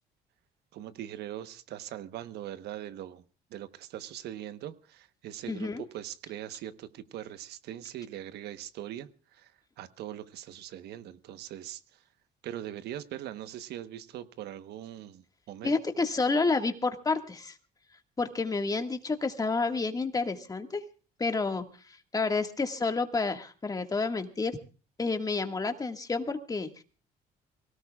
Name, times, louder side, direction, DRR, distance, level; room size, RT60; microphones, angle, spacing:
voice 1, 0.7-3.2 3.5-9.5 9.8-11.8 12.4-15.7, right 12 dB, 75° right, 12 dB, 1.1 m, -41 dB
voice 2, 5.5-5.8 15.6-17.6 18.2-20.8 21.2-24.6 25.0-26.8, left 3 dB, 20° left, 6 dB, 1.8 m, -30 dB
24.0 x 18.0 x 2.4 m, 0.37 s
cardioid pair, 110°, 17 cm